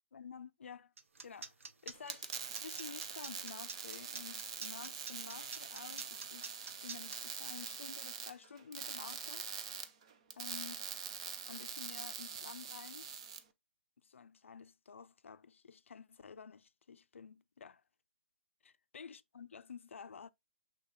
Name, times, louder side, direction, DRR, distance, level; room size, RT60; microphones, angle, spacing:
voice 1, 0.1-0.9 1.2-1.5 1.8-9.5 10.4-10.9 11.5-13.1 14.0-17.8 18.6-20.3, left 6 dB, 70° left, 0.4 m, -51 dB
sound 1, 1.0-7.2, right 4 dB, 80° right, 0.6 m, -47 dB
sound 2, 1.9-13.4, right 7 dB, 25° right, 0.4 m, -44 dB
6.4 x 3.0 x 2.5 m
hypercardioid pair, 170°, 7 cm